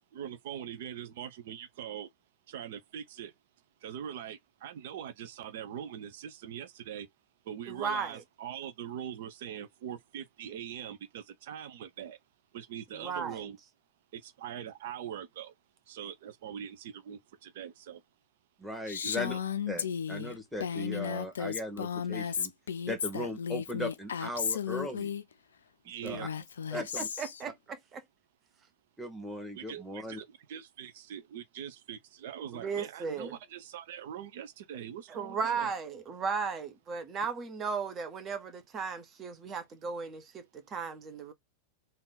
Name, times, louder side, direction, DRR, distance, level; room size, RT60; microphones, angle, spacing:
voice 1, 0.1-2.1 2.5-3.3 3.8-7.1 7.4-12.2 12.5-13.6 14.1-15.5 15.9-18.0 19.0-19.4 25.8-26.3 29.5-35.7, right 9 dB, 55° right, 0.7 m, -42 dB
voice 2, 7.7-8.2 12.9-13.4 26.7-28.0 32.5-33.3 35.1-41.3, right 5 dB, 25° right, 1.1 m, -36 dB
voice 3, 18.6-19.3 19.7-22.5 22.9-25.1 26.0-26.3 26.7-27.1 29.0-30.2, left 1 dB, 5° right, 1.6 m, -38 dB
Female speech woman speaking, 18.9-25.2 26.1-27.4, left 7 dB, 65° left, 0.4 m, -34 dB
3.7 x 2.7 x 3.9 m
figure-of-eight pair, 90°, 0 cm